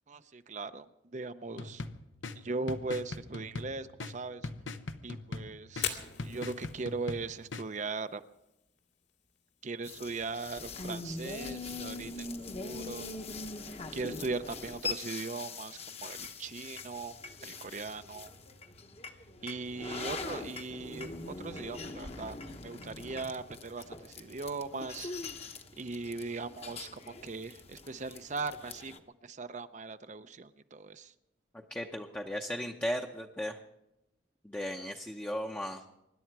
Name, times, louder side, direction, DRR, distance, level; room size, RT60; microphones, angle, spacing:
voice 1, 0.1-0.9 1.1-1.8 2.4-4.5 5.0-8.2 9.6-13.1 13.9-17.1 17.4-18.3 19.4-22.4 22.6-28.9 29.2-31.1, right 3 dB, 40° right, 11 dB, 0.6 m, -39 dB
sound 1, 1.6-7.6, left 3 dB, 90° left, 0.9 m, -42 dB
Fire, 5.7-19.6, left 9 dB, 70° left, 2.2 m, -48 dB
sound 2, 9.8-29.0, left 3 dB, 35° left, 1.0 m, -43 dB
voice 2, 31.7-33.6 34.4-35.8, equal, 10° left, 2 dB, 0.7 m, -36 dB
25.0 x 11.5 x 4.6 m, 0.88 s
head